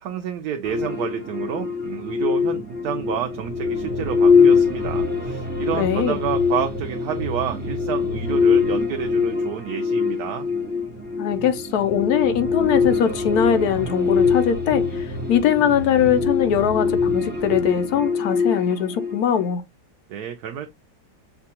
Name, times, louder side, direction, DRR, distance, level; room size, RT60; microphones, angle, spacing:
voice 1, 0.0-10.5 20.1-20.7, right 9 dB, 70° right, 1.0 m, -29 dB
sound 1, 0.6-19.5, left 5 dB, 10° right, 0.5 m, -23 dB
voice 2, 5.7-6.2 11.2-19.6, left 9 dB, 70° left, 1.0 m, -21 dB
6.6 x 2.3 x 2.7 m
omnidirectional pair, 1.9 m